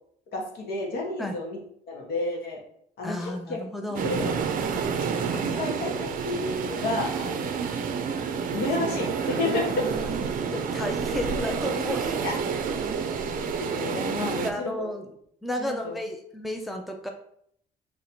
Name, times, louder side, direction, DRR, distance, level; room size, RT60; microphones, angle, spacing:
voice 1, 0.3-1.6 1.9-2.6 3.0-3.6 4.0-4.3 5.3-7.4 8.5-9.8 11.3-11.4 12.2-12.3 12.9-14.9 15.6-16.0, left 2 dB, 75° left, -1 dB, 1.4 m, -31 dB
voice 2, 3.0-4.1 9.2-9.5 9.8-10.3 10.5-13.2 14.4-15.1 15.4-17.1, left 1 dB, ahead, 3 dB, 0.4 m, -33 dB
sound 1, 3.9-14.5, right 6 dB, 55° right, 0.5 m, -29 dB
3.1 x 2.7 x 4.3 m, 0.68 s
cardioid pair, 110°, 17 cm